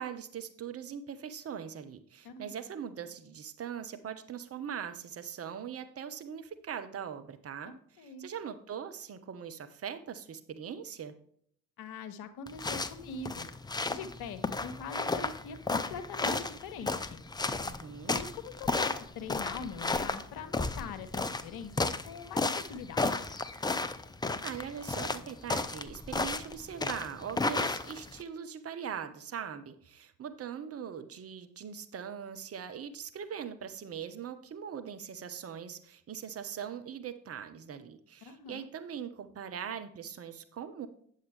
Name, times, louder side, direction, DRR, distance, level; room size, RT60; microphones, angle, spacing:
voice 1, 0.0-11.1 17.6-18.2 24.4-40.9, right 8 dB, 35° right, 9 dB, 1.0 m, -41 dB
voice 2, 7.6-8.2 11.8-13.5 13.9-17.2 18.1-23.3 38.2-38.6, left 5 dB, 55° left, 10 dB, 1.2 m, -43 dB
sound 1, 12.5-28.2, left 3 dB, 10° left, 0.5 m, -33 dB
9.5 x 7.3 x 3.4 m, 0.64 s
figure-of-eight pair, 45°, 43 cm